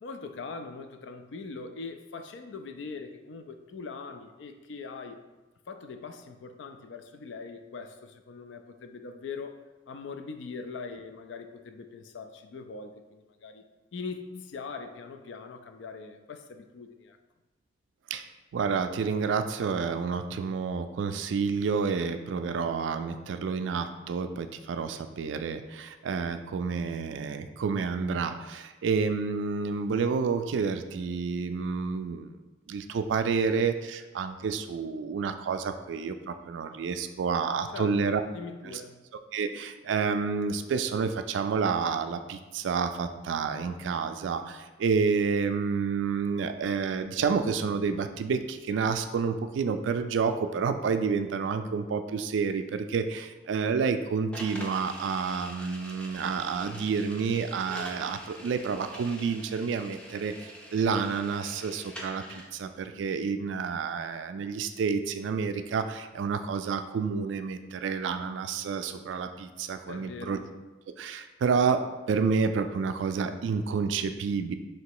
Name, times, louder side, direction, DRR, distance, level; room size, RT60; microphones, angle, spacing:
voice 1, 0.0-5.2 5.7-9.5 9.9-13.6 13.9-17.2 37.7-38.0 38.3-39.0 69.9-70.4, left 4 dB, 85° left, 7 dB, 0.4 m, -41 dB
voice 2, 18.5-32.4 32.7-38.2 38.6-38.8 39.3-70.4 71.0-74.6, right 5 dB, 90° right, 9 dB, 0.3 m, -29 dB
sound 1, 54.3-62.5, equal, 5° left, 0.4 m, -45 dB
3.2 x 2.9 x 4.6 m, 1.2 s
head